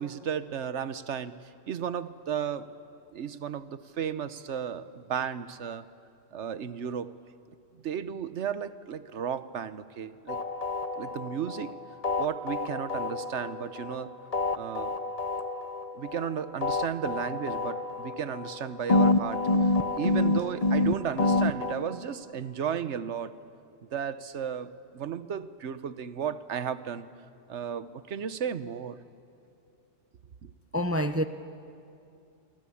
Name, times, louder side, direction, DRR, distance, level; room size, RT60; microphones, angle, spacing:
voice 1, 0.0-1.3 1.7-2.7 3.1-5.8 6.3-7.2 7.8-10.4 11.0-11.8 12.2-14.1 14.5-14.9 15.9-23.4 23.9-27.1 27.5-29.0 30.4-30.5, right 8 dB, 85° right, 13 dB, 1.2 m, -34 dB
sound 1, 10.3-11.7 12.0-14.0 14.3-16.3 16.6-18.6 18.9-21.7, left 2 dB, 35° left, 1.1 m, -27 dB
voice 2, 30.7-31.2, equal, 15° right, 9 dB, 0.7 m, -26 dB
28.0 x 24.0 x 8.5 m, 2.6 s
omnidirectional pair, 1.2 m